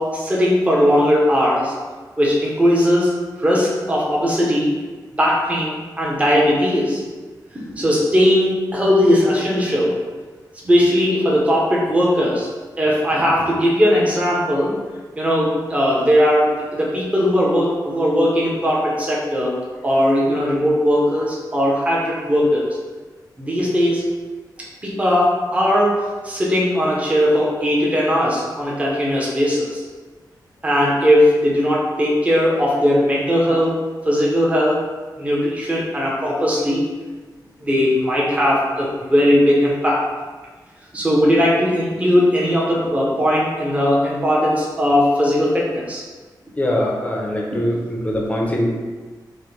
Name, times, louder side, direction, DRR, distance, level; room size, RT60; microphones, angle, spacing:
voice 1, 0.0-1.7 2.2-3.1 3.4-4.7 5.2-7.0 7.5-10.0 10.6-12.5 12.8-14.7 15.2-19.6 19.8-22.7 23.4-24.0 24.8-29.8 30.6-33.8 34.0-34.8 35.2-36.8 37.6-40.0 40.9-46.0 47.5-47.6, equal, 20° right, -5 dB, 0.8 m, -18 dB
voice 2, 46.6-48.7, left 1 dB, 20° left, -1 dB, 0.6 m, -22 dB
5.3 x 2.2 x 3.1 m, 1.4 s
wide cardioid pair, 175°, 8 cm